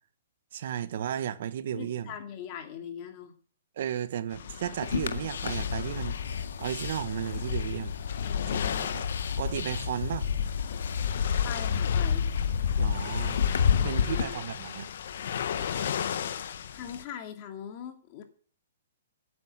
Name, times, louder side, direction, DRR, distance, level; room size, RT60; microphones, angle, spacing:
voice 1, 0.5-2.1 3.8-7.9 8.5-9.0 9.4-10.3 12.8-13.4 13.8-14.9, right 10 dB, 50° right, 1.3 m, -34 dB
voice 2, 1.7-3.3 8.2-8.9 11.2-12.3 13.8-14.4 16.2-16.3 16.7-18.2, left 8 dB, 30° left, 2.7 m, -41 dB
sound 1, 4.3-17.0, left 8 dB, 55° left, 1.4 m, -37 dB
sound 2, 4.8-14.2, left 7 dB, 80° left, 2.0 m, -29 dB
15.5 x 9.7 x 7.8 m
hypercardioid pair, 165°, 0 cm